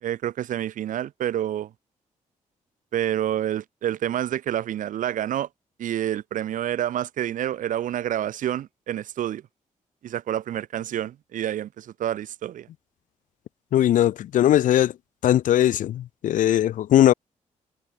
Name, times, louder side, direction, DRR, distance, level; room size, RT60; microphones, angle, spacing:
voice 1, 0.0-1.7 2.9-5.5 5.8-9.4 10.0-12.7, right 11 dB, 90° right, 2.1 m, -28 dB
voice 2, 13.7-14.9 15.2-17.1, left 12 dB, 85° left, 0.7 m, -19 dB
cardioid pair, 110°, 13 cm